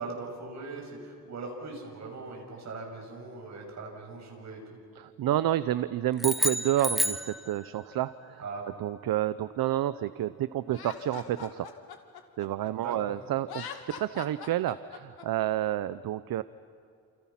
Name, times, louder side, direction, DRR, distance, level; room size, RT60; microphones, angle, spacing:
voice 1, 0.0-4.8 8.4-8.6 12.8-12.9, right 3 dB, 45° right, 0 dB, 7.3 m, -40 dB
voice 2, 5.0-8.4 8.8-11.7 12.4-16.4, right 13 dB, 70° right, 14 dB, 0.7 m, -29 dB
sound 1, 6.2-8.0, equal, ahead, 0.8 m, -30 dB
Laughter, 10.7-13.0 13.4-15.2, left 8 dB, 85° left, 2.3 m, -42 dB
29.5 x 28.5 x 5.9 m, 2.5 s
wide cardioid pair, 175°, 37 cm